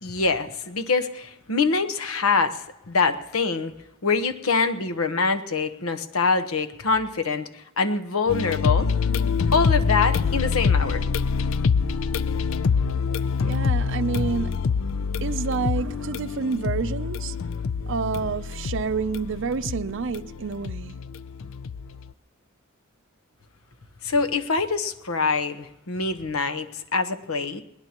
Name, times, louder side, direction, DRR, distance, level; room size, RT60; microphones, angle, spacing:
voice 1, 0.0-2.6 2.9-3.7 4.0-8.9 9.5-11.1 24.0-27.6, left 4 dB, 90° left, 1.1 m, -24 dB
sound 1, 8.3-22.1, left 5 dB, 65° left, 0.4 m, -25 dB
voice 2, 13.4-14.7 15.2-17.4 17.9-21.1, right 5 dB, 60° right, 0.5 m, -29 dB
21.0 x 19.5 x 3.0 m
head